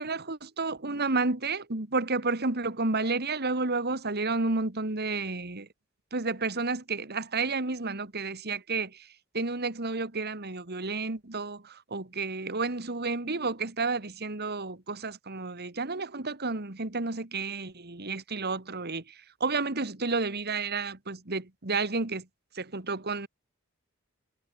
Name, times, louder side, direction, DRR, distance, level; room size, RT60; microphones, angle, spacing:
voice 1, 0.0-5.7 6.1-9.1 9.3-19.0 19.4-22.3 22.6-23.3, right 3 dB, 50° right, 2.3 m, -31 dB
head